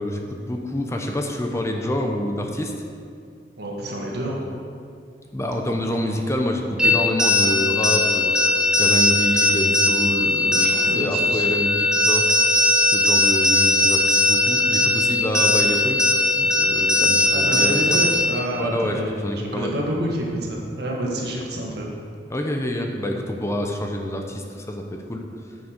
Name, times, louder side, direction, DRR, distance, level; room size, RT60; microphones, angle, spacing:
voice 1, 0.0-2.7 5.3-8.3 8.8-12.2 12.9-16.1 16.4-18.0 18.6-19.7 21.3-21.4 22.3-25.2, equal, 15° left, 2 dB, 0.7 m, -27 dB
voice 2, 3.6-4.4 10.5-11.5 17.3-21.9, right 1 dB, 65° right, -1 dB, 1.8 m, -28 dB
sound 1, 6.8-18.4, left 2 dB, 5° right, 1.1 m, -19 dB
9.1 x 6.1 x 6.5 m, 2.3 s
head